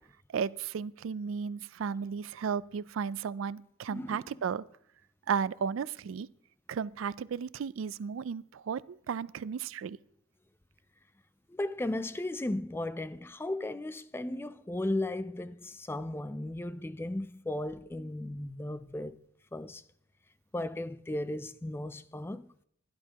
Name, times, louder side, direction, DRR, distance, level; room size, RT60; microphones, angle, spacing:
voice 1, 0.3-4.6 5.3-6.3 6.7-10.0, right 6 dB, 85° right, 0.4 m, -34 dB
voice 2, 3.9-4.2 11.5-19.2 19.5-19.8 20.5-22.5, left 1 dB, 10° left, 0.3 m, -35 dB
16.5 x 11.5 x 2.9 m
head